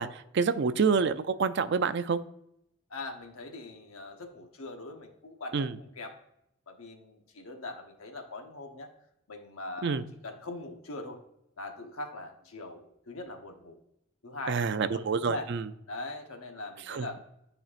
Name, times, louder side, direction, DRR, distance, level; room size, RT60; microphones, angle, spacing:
voice 1, 0.0-2.2 5.5-5.8 9.8-10.0 14.5-15.7 16.9-17.1, right 5 dB, 55° right, 12 dB, 0.4 m, -27 dB
voice 2, 2.9-6.2 6.7-8.9 9.3-11.2 11.6-13.8 14.2-15.5 15.9-17.2, left 2 dB, 85° left, 4 dB, 1.0 m, -41 dB
9.7 x 4.4 x 2.5 m, 0.79 s
head